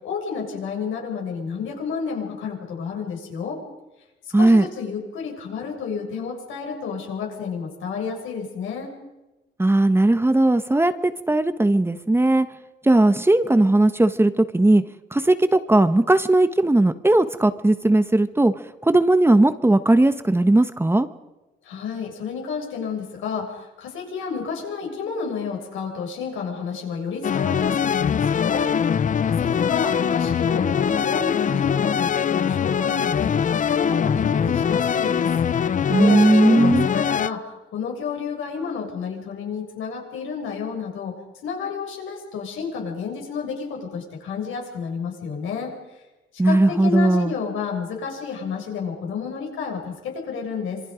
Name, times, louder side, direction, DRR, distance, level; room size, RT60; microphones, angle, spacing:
voice 1, 0.0-3.6 4.4-8.9 21.6-28.7 29.2-35.3 36.0-41.1 41.4-45.7 46.4-50.8, left 6 dB, 85° left, 1 dB, 7.1 m, -30 dB
voice 2, 4.3-4.7 9.6-12.5 12.9-14.8 15.1-18.5 18.8-21.1 35.9-36.9 46.4-47.3, right 2 dB, 10° right, 10 dB, 1.3 m, -17 dB
sound 1, 27.2-37.3, left 7 dB, 40° left, 0.7 m, -22 dB
26.5 x 23.5 x 5.2 m, 1.0 s
cardioid pair, 90°, 20 cm